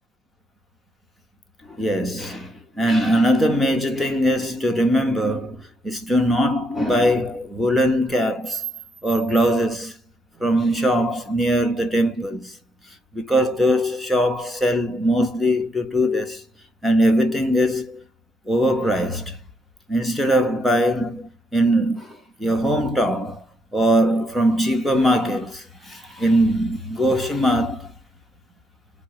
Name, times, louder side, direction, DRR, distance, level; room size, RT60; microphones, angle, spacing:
voice 1, 1.6-8.6 9.0-10.0 10.4-12.6 13.1-16.4 16.8-18.0 18.5-19.4 19.9-23.4 23.7-27.9, equal, ahead, 0.8 m, -21 dB
4.5 x 2.0 x 4.4 m
figure-of-eight pair, 90°, 0 cm